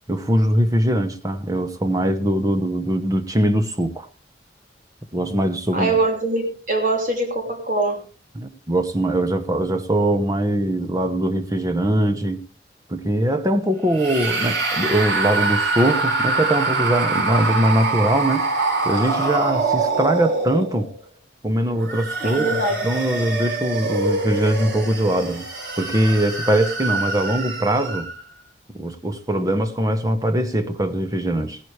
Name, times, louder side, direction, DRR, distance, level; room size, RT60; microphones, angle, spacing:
voice 1, 0.1-4.1 5.1-6.0 8.3-12.4 12.9-20.9 21.4-22.4 22.8-25.4 25.8-28.1 28.7-31.6, right 1 dB, 20° right, 1.0 m, -21 dB
voice 2, 5.7-8.0 22.2-22.7, right 2 dB, 45° right, 3.0 m, -22 dB
sound 1, 13.9-21.0 21.7-28.2, right 3 dB, 85° right, 3.8 m, -24 dB
16.5 x 11.0 x 3.4 m
head